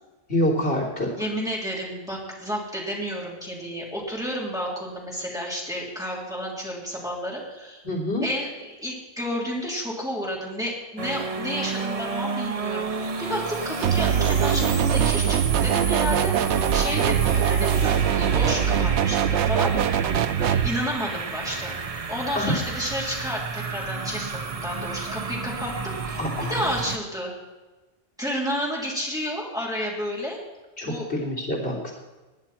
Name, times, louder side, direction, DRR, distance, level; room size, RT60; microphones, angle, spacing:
voice 1, 0.3-1.1 7.8-8.3 22.4-22.5 26.2-26.5 30.8-31.9, left 1 dB, 70° left, 0 dB, 3.4 m, -26 dB
voice 2, 1.1-7.8 8.2-20.1 20.4-21.7 22.1-26.2 26.5-27.3 28.2-30.4 30.8-31.1, equal, 5° right, -4 dB, 3.4 m, -31 dB
sound 1, 11.0-27.0, right 4 dB, 35° right, 0.8 m, -31 dB
sound 2, 13.8-20.7, right 9 dB, 80° right, 0.9 m, -22 dB
19.5 x 10.5 x 4.4 m, 1.2 s
omnidirectional pair, 1.1 m